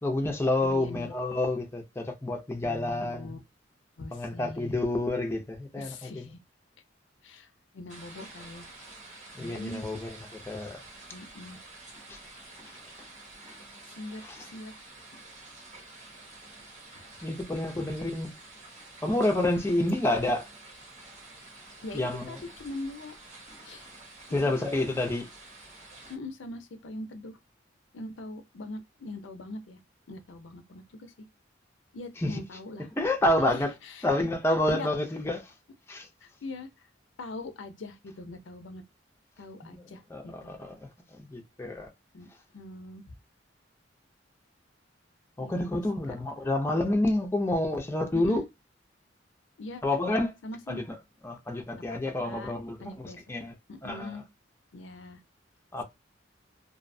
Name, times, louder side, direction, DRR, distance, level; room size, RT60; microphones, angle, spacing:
voice 1, 0.0-3.4 4.1-6.3 9.4-10.8 12.1-12.2 12.6-12.8 17.2-18.3 19.0-20.5 21.9-22.4 24.3-25.3 32.2-32.4 33.0-33.7 34.0-35.5 35.9-36.1 39.6-39.8 40.1-41.9 45.4-48.4 49.8-50.3 50.7-51.0 51.2-53.5 53.8-54.2 55.7-55.8, left 1 dB, 15° left, 0.4 m, -29 dB
voice 2, 0.6-1.1 2.6-3.4 4.0-4.8 5.8-6.4 7.2-7.5 7.7-8.7 9.4-9.9 11.1-11.6 14.0-14.7 21.8-23.1 23.6-23.9 24.3-25.0 26.1-27.4 27.9-29.8 30.1-31.1 31.9-32.9 33.5-34.1 34.7-34.9 36.2-36.7 37.2-38.8 39.4-40.6 42.1-42.3 42.5-43.0 45.4-45.5 46.1-46.2 48.1-48.4 49.6-49.8 50.4-50.8 51.9-52.5 52.8-53.2 53.8-54.2 54.7-55.2, left 2 dB, 75° left, 0.5 m, -41 dB
sound 1, 7.9-26.2, right 2 dB, 40° right, 0.8 m, -49 dB
2.6 x 2.0 x 2.6 m
head